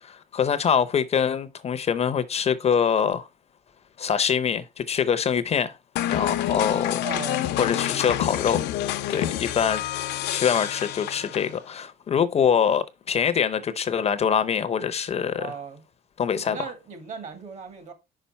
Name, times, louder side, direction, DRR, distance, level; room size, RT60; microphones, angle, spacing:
voice 1, 0.0-3.3 4.0-5.8 6.1-7.0 7.6-8.6 9.1-9.8 10.3-15.6 16.2-16.7, left 7 dB, 40° left, 0.6 m, -24 dB
sound 1, 6.0-11.6, left 13 dB, 80° left, 0.7 m, -28 dB
voice 2, 7.0-7.5 15.4-15.8 16.4-17.9, right 5 dB, 45° right, 2.2 m, -37 dB
5.7 x 4.9 x 4.1 m
cardioid pair, 110°, 17 cm